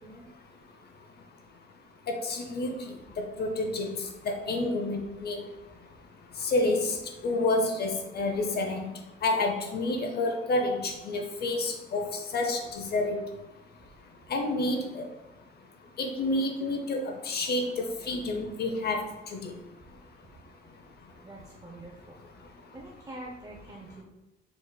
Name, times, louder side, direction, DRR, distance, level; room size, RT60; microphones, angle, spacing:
voice 1, 2.1-2.8 3.2-5.4 6.4-7.0 7.2-8.9 9.2-13.2 14.3-15.1 16.0-19.0 19.3-19.5, left 2 dB, 55° left, 4 dB, 0.6 m, -29 dB
voice 2, 21.2-22.2 22.4-24.0, right 1 dB, 20° right, -2 dB, 0.6 m, -45 dB
4.7 x 4.0 x 2.2 m, 0.98 s
cardioid pair, 90°, 20 cm